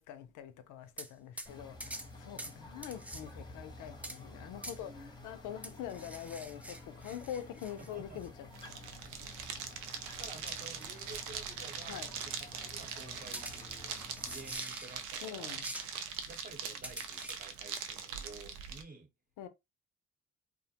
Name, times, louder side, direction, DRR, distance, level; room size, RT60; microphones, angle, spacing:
voice 1, 0.0-8.5 11.9-12.1 15.2-15.7 19.4-19.5, left 10 dB, 85° left, 0.5 m, -44 dB
sound 1, 1.0-1.1 1.4-1.5 1.8-2.1 2.4-2.6 2.8-3.2 4.0-4.2 4.6-4.8 5.6-7.9 8.2-8.3 10.5-10.9 11.1-11.2 13.3-15.3 15.6-15.9 16.8-17.4, right 1 dB, 5° right, 0.3 m, -45 dB
sound 2, 1.5-14.6, left 2 dB, 15° left, 0.7 m, -51 dB
voice 2, 7.8-8.2 10.2-15.7 16.3-19.1, right 3 dB, 30° right, 0.9 m, -52 dB
sound 3, 8.5-18.8, right 7 dB, 75° right, 0.5 m, -42 dB
2.4 x 2.1 x 2.8 m
cardioid pair, 90°, 30 cm